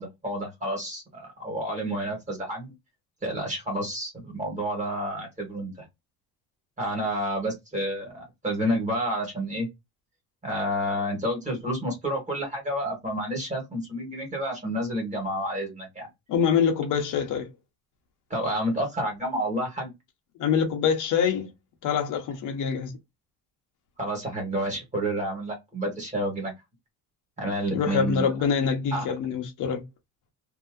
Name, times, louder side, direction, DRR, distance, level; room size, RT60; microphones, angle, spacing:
voice 1, 0.0-2.7 3.2-5.7 6.8-9.7 10.4-16.1 18.3-19.9 24.0-26.5 27.4-28.3 28.9-29.0, equal, 20° right, 1.5 m, -29 dB
voice 2, 16.3-17.5 20.4-21.5 21.8-22.9 27.7-29.8, left 7 dB, 60° left, 0.9 m, -25 dB
2.8 x 2.7 x 2.5 m
cardioid pair, 180°, 36 cm